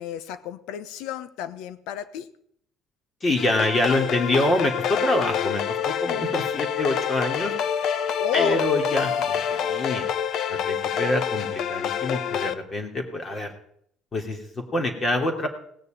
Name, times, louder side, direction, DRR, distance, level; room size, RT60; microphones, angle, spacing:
voice 1, 0.0-2.3 8.2-8.7, left 10 dB, 85° left, 14 dB, 1.1 m, -31 dB
voice 2, 3.2-7.5 8.3-10.1 10.5-13.5 14.1-15.5, left 1 dB, 25° left, 4 dB, 3.0 m, -26 dB
sound 1, 3.4-12.5, left 8 dB, 55° left, 0.9 m, -27 dB
18.0 x 6.8 x 8.9 m, 0.68 s
cardioid pair, 145°, 0 cm